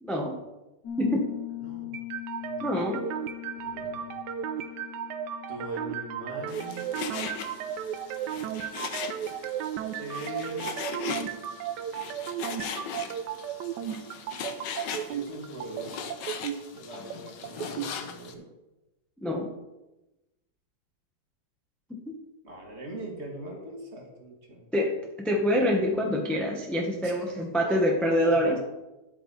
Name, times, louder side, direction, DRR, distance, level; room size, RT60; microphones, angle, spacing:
voice 1, 0.0-0.3 1.0-1.2 2.6-3.0 19.2-19.5 22.1-22.2 24.7-28.6, equal, ahead, 0 dB, 0.9 m, -26 dB
Piano, 0.8-9.4, left 15 dB, 70° left, 2.8 m, -42 dB
voice 2, 1.6-2.0 2.4-2.8 3.5-4.2 5.5-6.9 7.4-8.0 9.9-11.4 15.1-16.0 16.7-18.5 22.4-24.7 27.0-28.6, right 1 dB, 40° right, 0 dB, 2.0 m, -42 dB
sound 1, 1.9-17.9, right 9 dB, 85° right, 1.2 m, -35 dB
Frying (food), 6.5-18.3, left 7 dB, 85° left, 1.5 m, -39 dB
10.5 x 8.4 x 4.1 m, 1.0 s
omnidirectional pair, 1.9 m